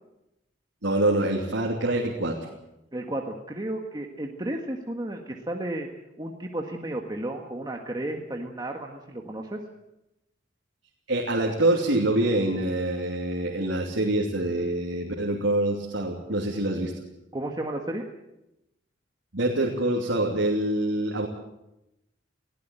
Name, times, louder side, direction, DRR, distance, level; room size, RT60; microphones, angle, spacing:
voice 1, 0.8-2.4 11.1-16.9 19.3-21.3, right 1 dB, 90° right, -1 dB, 3.0 m, -25 dB
voice 2, 2.9-5.9 6.2-9.6 17.3-18.1, right 1 dB, 25° right, 2 dB, 1.7 m, -33 dB
19.5 x 16.0 x 9.0 m, 0.90 s
head